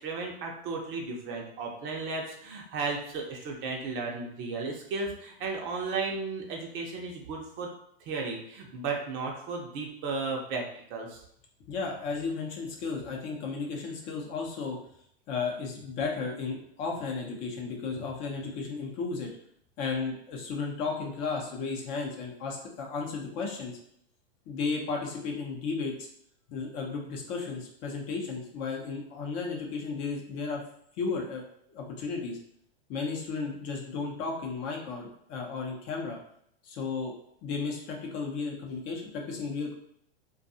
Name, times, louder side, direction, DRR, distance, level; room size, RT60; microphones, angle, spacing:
voice 1, 0.0-7.7 8.0-11.2, right 4 dB, 40° right, 0 dB, 0.6 m, -34 dB
voice 2, 11.7-14.8 15.3-19.3 19.8-23.8 24.5-26.1 26.5-30.6 31.0-31.4 31.7-32.4 32.9-36.2 36.6-39.7, left 4 dB, 40° left, 0 dB, 0.7 m, -34 dB
2.5 x 2.3 x 2.6 m, 0.69 s
hypercardioid pair, 115°, 31 cm